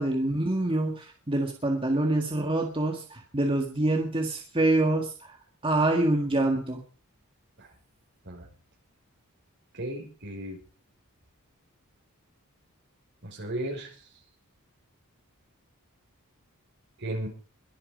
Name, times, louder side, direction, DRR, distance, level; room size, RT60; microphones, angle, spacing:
voice 1, 0.0-5.4 5.6-6.8, right 2 dB, 25° right, 3 dB, 1.7 m, -26 dB
voice 2, 9.7-10.6 13.2-14.0 17.0-17.3, right 1 dB, 55° right, 2 dB, 5.6 m, -35 dB
22.0 x 8.7 x 5.1 m, 0.38 s
head